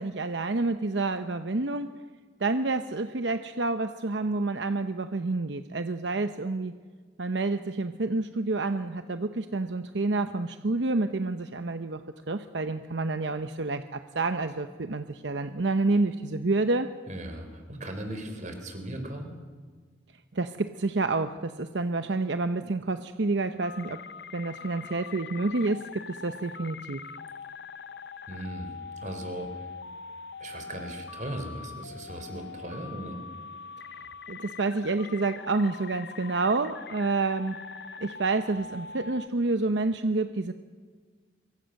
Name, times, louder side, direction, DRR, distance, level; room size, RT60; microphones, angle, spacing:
voice 1, 0.0-1.9 2.4-6.7 7.2-16.9 20.3-24.0 24.3-27.0 33.9-34.0 34.3-37.6 38.0-40.5, right 3 dB, 70° right, 9 dB, 0.8 m, -28 dB
voice 2, 17.1-19.4 28.3-29.7 30.4-33.2, right 1 dB, 40° right, 6 dB, 3.8 m, -38 dB
sound 1, 23.6-39.3, left 5 dB, 60° left, 0.6 m, -43 dB
24.5 x 23.5 x 6.5 m, 1.5 s
head